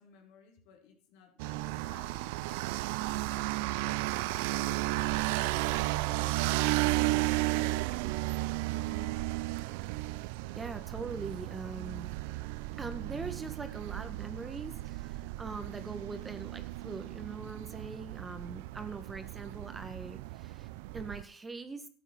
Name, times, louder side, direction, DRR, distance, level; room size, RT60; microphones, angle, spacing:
voice 1, 0.0-2.3 3.2-5.1 6.2-7.1 10.9-11.2 20.1-20.3, left 7 dB, 80° left, 2 dB, 3.3 m, -58 dB
sound 1, 1.4-21.2, right 19 dB, 80° right, 0.5 m, -34 dB
voice 2, 8.7-9.2 10.5-12.1 12.8-21.9, right 4 dB, 20° right, 10 dB, 1.6 m, -42 dB
13.0 x 8.2 x 5.9 m, 0.43 s
supercardioid pair, 100°, 0 cm